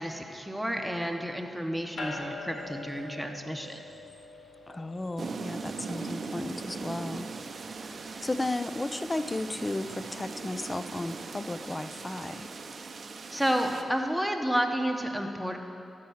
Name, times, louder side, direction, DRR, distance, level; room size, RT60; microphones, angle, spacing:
voice 1, 0.0-3.8 13.3-15.6, equal, ahead, 3 dB, 1.1 m, -30 dB
sound 1, 2.0-13.6, left 2 dB, 70° left, 1.3 m, -47 dB
voice 2, 4.7-7.3 8.2-12.5, left 2 dB, 25° left, 12 dB, 0.4 m, -34 dB
sound 2, 5.2-13.8, right 4 dB, 65° right, 0.6 m, -40 dB
13.0 x 4.6 x 7.1 m, 2.7 s
cardioid pair, 50°, 0 cm